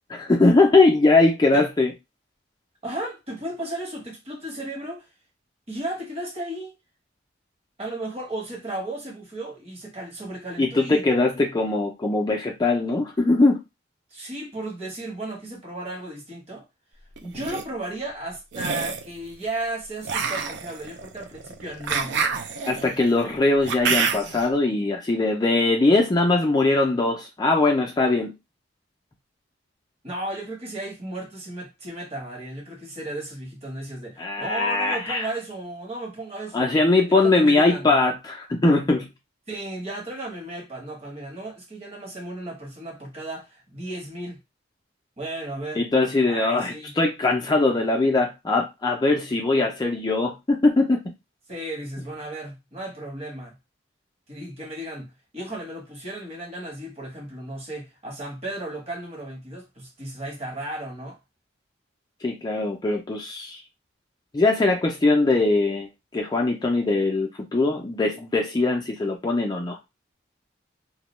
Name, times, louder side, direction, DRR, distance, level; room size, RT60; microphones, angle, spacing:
voice 1, 0.1-1.9 10.6-13.6 22.7-28.3 34.2-35.3 36.5-39.1 45.8-51.0 62.2-63.6 64.3-69.8, left 2 dB, 20° left, 0.4 m, -21 dB
voice 2, 2.8-5.1 5.7-6.7 7.8-11.0 14.1-16.6 17.2-22.4 30.0-36.7 37.1-38.0 39.5-44.4 45.2-45.8 46.2-46.9 51.5-53.6 54.3-61.2, right 1 dB, 30° right, 0.9 m, -34 dB
sound 1, 17.2-17.6 18.5-19.1 20.0-24.5, right 5 dB, 60° right, 0.3 m, -27 dB
2.3 x 2.1 x 2.9 m
head